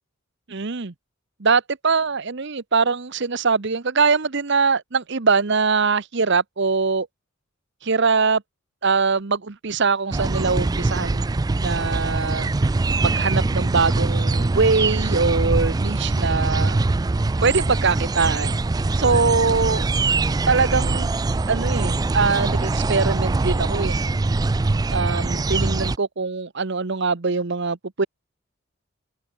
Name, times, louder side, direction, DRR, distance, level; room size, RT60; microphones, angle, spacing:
voice 1, 0.5-0.9 1.4-7.1 7.8-8.4 8.8-11.2 11.6-12.5 13.0-16.8 17.4-18.5 19.0-19.9 20.5-21.1 21.5-24.0 24.9-28.1, right 4 dB, 55° right, 0.9 m, -22 dB
sound 1, 10.1-26.0, right 3 dB, 20° right, 0.3 m, -22 dB
open air
head